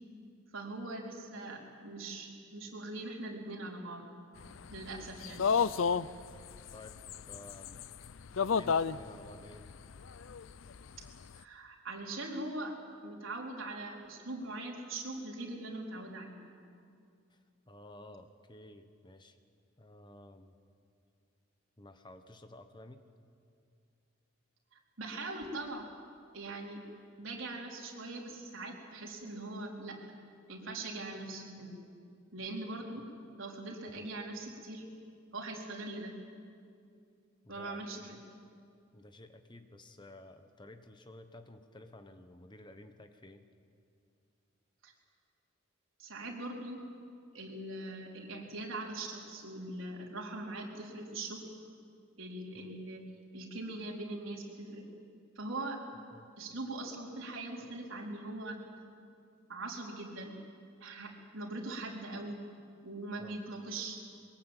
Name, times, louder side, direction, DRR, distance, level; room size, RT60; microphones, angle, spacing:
voice 1, 0.5-4.0 4.7-5.5 11.3-12.7 13.0-16.4 25.0-25.9 26.3-26.8 27.2-30.0 30.5-31.7 32.3-33.0 33.4-34.8 35.3-36.1 37.5-38.2 44.8-44.9 46.0-46.8 47.3-51.4 52.2-53.0 53.3-54.8 55.4-55.8 56.4-58.6 59.5-60.4 60.8-62.4 62.8-64.0, right 2 dB, 75° right, -1 dB, 4.3 m, -41 dB
sound 1, 4.4-11.2, left 6 dB, 75° left, 0.5 m, -32 dB
voice 2, 7.3-7.9 8.4-9.7 17.3-19.4 19.8-20.5 21.8-23.0 34.0-34.1 37.4-38.2 38.9-43.4 52.5-52.8 56.1-56.3 63.2-63.4, left 1 dB, 20° left, 8 dB, 1.1 m, -53 dB
23.0 x 21.5 x 9.1 m, 2.4 s
head